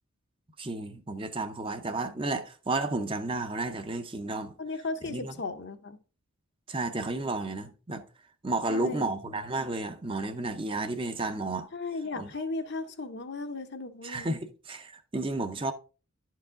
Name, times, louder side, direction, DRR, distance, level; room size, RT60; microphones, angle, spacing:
voice 1, 0.6-4.5 5.1-5.3 6.7-8.0 8.4-11.7 12.2-12.3 14.0-15.7, right 2 dB, 25° right, 0.6 m, -32 dB
voice 2, 4.6-6.0 8.7-9.1 11.7-14.3, left 3 dB, 50° left, 0.8 m, -36 dB
11.0 x 4.8 x 3.7 m
head